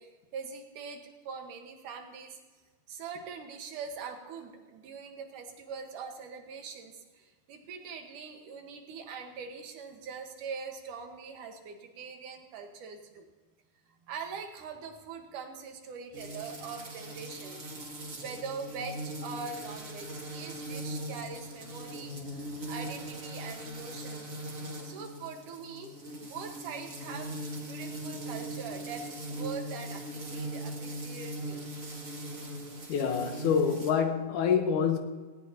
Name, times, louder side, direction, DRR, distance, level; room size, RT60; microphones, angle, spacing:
voice 1, 0.0-2.4 2.9-13.3 14.1-17.6 18.2-24.4 24.8-25.9 26.2-27.3 27.6-29.0 29.3-31.7, right 5 dB, 85° right, 3.0 m, -42 dB
sound 1, 16.1-33.9, right 1 dB, 30° right, 1.9 m, -40 dB
voice 2, 32.9-35.0, left 7 dB, 80° left, 2.7 m, -26 dB
18.0 x 17.5 x 2.9 m
omnidirectional pair, 3.5 m